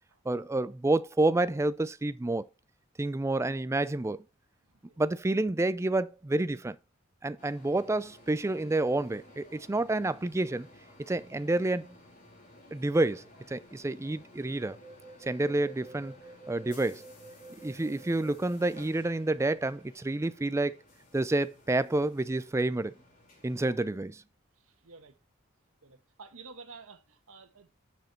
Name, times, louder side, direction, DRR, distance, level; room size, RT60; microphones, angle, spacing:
voice 1, 0.3-2.5 3.0-4.2 5.0-6.8 7.2-10.7 11.1-11.9 12.7-14.8 15.2-16.1 16.5-17.0 17.6-20.8 21.1-22.9 23.4-24.1, right 2 dB, 15° right, 0.4 m, -29 dB
voice 2, 4.7-5.2 9.7-9.9 23.6-23.8 24.8-25.2 25.8-27.7, right 4 dB, 70° right, 1.2 m, -51 dB
sound 1, 7.4-23.7, equal, 40° left, 2.9 m, -53 dB
6.6 x 6.2 x 4.4 m
head